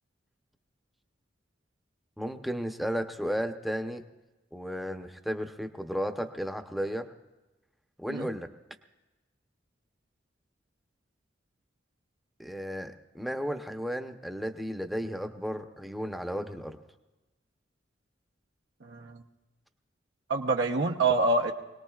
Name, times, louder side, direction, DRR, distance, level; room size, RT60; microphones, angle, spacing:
voice 1, 2.2-4.0 4.5-7.1 8.0-8.5 12.4-16.8, equal, ahead, 5 dB, 0.7 m, -34 dB
voice 2, 18.8-19.2 20.3-21.5, right 3 dB, 80° right, 0 dB, 0.9 m, -26 dB
25.0 x 19.0 x 2.4 m, 1.1 s
head